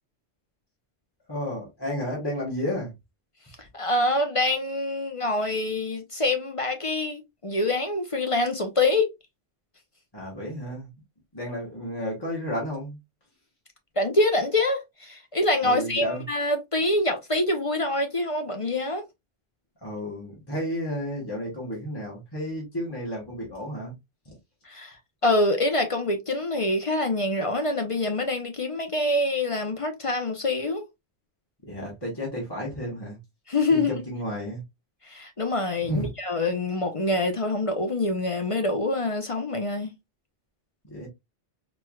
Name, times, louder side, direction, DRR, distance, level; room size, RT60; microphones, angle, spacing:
voice 1, 1.3-2.9 10.1-10.9 11.3-13.0 15.6-16.2 19.8-23.9 24.2-24.4 31.7-33.2 33.7-34.6 35.8-36.1 40.8-41.1, equal, 20° left, 1.2 m, -32 dB
voice 2, 3.7-9.1 14.0-19.0 24.6-25.0 25.2-30.8 33.5-33.9 35.0-39.9, left 2 dB, 40° left, 0.5 m, -25 dB
4.4 x 3.1 x 2.2 m
omnidirectional pair, 1.2 m